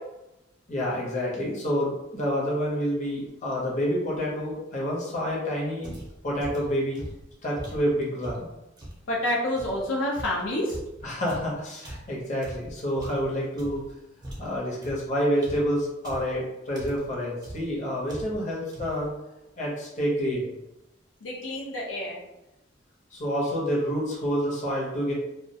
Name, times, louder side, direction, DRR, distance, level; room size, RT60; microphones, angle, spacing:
voice 1, 0.7-5.9 6.2-7.0 7.4-8.5 11.0-13.8 14.4-19.1 19.6-20.5 23.1-25.1, equal, 40° left, -4 dB, 0.7 m, -28 dB
sound 1, 5.8-9.1 9.6-13.9 14.2-16.4 16.7-17.2 17.4-17.8 18.1-18.5 18.7-19.1, right 1 dB, 20° right, 0.5 m, -41 dB
voice 2, 9.1-10.8 21.2-22.2, left 1 dB, 80° left, -3 dB, 0.5 m, -28 dB
2.2 x 2.1 x 2.7 m, 0.92 s
head